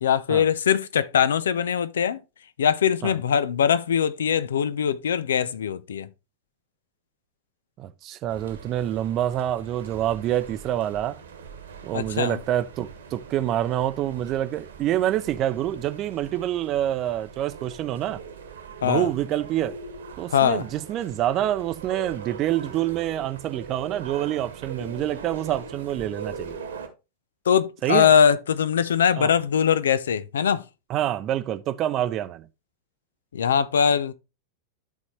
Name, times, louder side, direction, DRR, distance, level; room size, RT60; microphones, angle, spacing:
voice 1, 0.0-2.2 2.6-6.1 11.9-12.4 18.8-19.1 20.3-20.6 27.5-30.6 33.3-34.1, left 8 dB, 65° left, 0.5 m, -22 dB
voice 2, 7.8-11.2 11.8-18.2 18.8-19.8 20.2-26.6 27.8-28.1 29.2-29.3 30.9-32.5, right 12 dB, 35° right, 0.6 m, -27 dB
sound 1, 8.3-26.9, right 5 dB, 65° right, 1.4 m, -41 dB
12.5 x 4.2 x 3.1 m
figure-of-eight pair, 90°, 0 cm